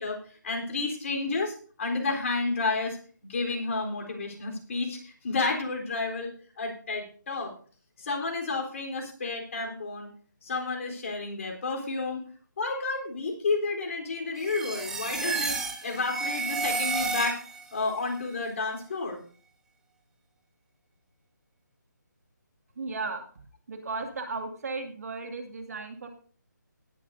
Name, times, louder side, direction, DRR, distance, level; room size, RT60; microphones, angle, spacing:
voice 1, 0.0-3.0 3.3-7.5 8.0-10.1 10.4-12.2 12.6-17.4 17.7-19.2, left 3 dB, 45° left, 1 dB, 3.8 m, -31 dB
sound 1, 14.4-17.7, right 4 dB, 5° right, 1.0 m, -31 dB
voice 2, 22.8-23.2 23.7-26.1, right 3 dB, 55° right, 4 dB, 2.4 m, -35 dB
18.0 x 10.5 x 2.7 m, 0.43 s
figure-of-eight pair, 155°, 10 cm